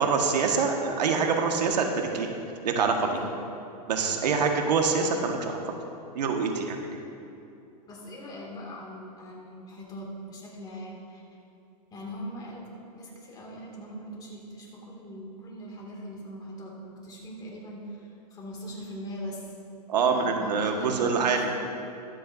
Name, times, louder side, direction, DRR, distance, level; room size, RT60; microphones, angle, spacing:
voice 1, 0.0-2.3 2.6-3.1 3.9-5.7 6.1-6.8 19.9-21.4, right 5 dB, 85° right, 3 dB, 1.5 m, -25 dB
voice 2, 3.0-3.4 4.1-4.5 7.9-11.2 11.9-19.5 20.1-21.6, equal, 20° left, -2 dB, 2.2 m, -41 dB
22.0 x 7.8 x 2.6 m, 2.8 s
supercardioid pair, 150°, 21 cm